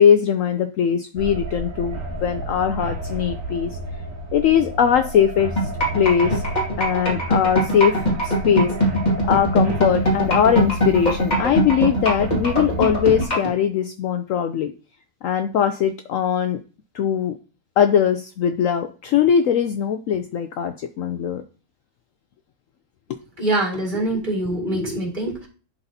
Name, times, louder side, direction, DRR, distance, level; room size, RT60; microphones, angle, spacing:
voice 1, 0.0-3.8 4.3-5.5 5.9-6.4 6.8-8.9 9.3-14.7 15.2-16.6 16.9-17.4 17.8-21.4 23.1-23.2, left 8 dB, 70° left, 7 dB, 0.8 m, -20 dB
sound 1, 1.2-13.2, right 1 dB, 55° right, 1.5 m, -31 dB
sound 2, 5.6-13.5, equal, 25° left, 2.3 m, -20 dB
voice 2, 23.4-25.5, right 1 dB, 30° right, -2 dB, 2.1 m, -24 dB
11.0 x 3.9 x 2.7 m, 0.36 s
omnidirectional pair, 1.7 m